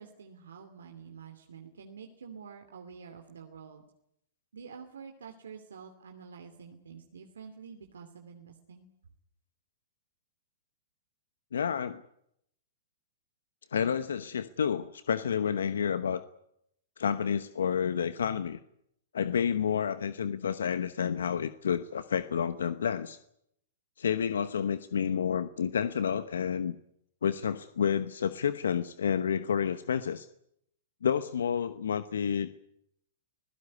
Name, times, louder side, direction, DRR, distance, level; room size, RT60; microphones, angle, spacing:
voice 1, 0.0-3.8 4.5-8.9, right 6 dB, 85° right, 4 dB, 2.7 m, -48 dB
voice 2, 11.5-12.0 13.7-16.2 17.0-18.6 19.1-23.2 24.0-26.8 27.2-30.3 31.0-32.5, left 7 dB, 85° left, 13 dB, 1.0 m, -30 dB
25.5 x 16.5 x 9.7 m, 0.76 s
hypercardioid pair, 125°, 0 cm